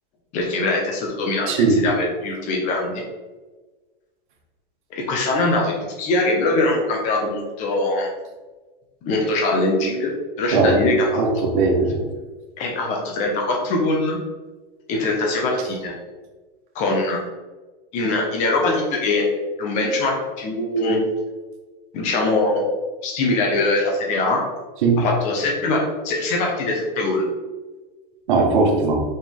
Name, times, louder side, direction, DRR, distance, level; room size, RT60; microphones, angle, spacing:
voice 1, 0.3-3.0 4.9-8.1 9.0-10.1 10.4-11.4 12.6-14.2 14.9-15.9 16.7-17.2 17.9-19.3 19.6-21.0 21.9-22.6 23.0-24.4 25.0-27.3, left 2 dB, 25° left, 0 dB, 1.3 m, -22 dB
voice 2, 1.5-1.8 10.5-10.8 11.1-12.1 24.8-25.0 28.3-29.0, right 3 dB, 55° right, 0 dB, 1.6 m, -18 dB
5.9 x 5.8 x 3.5 m, 1.3 s
supercardioid pair, 175°, 29 cm